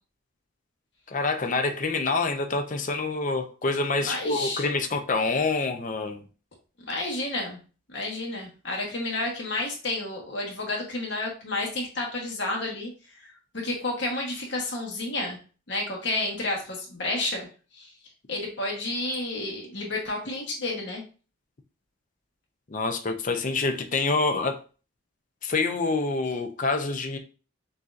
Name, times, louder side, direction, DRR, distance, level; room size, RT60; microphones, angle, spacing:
voice 1, 1.1-6.2 22.7-24.6 25.4-27.2, left 3 dB, 40° left, 0.5 m, -26 dB
voice 2, 4.0-4.7 6.9-7.6 7.9-13.3 13.6-15.4 15.7-17.5 17.7-17.9 18.3-21.0, left 2 dB, 55° left, 1.2 m, -31 dB
6.3 x 2.7 x 2.4 m
head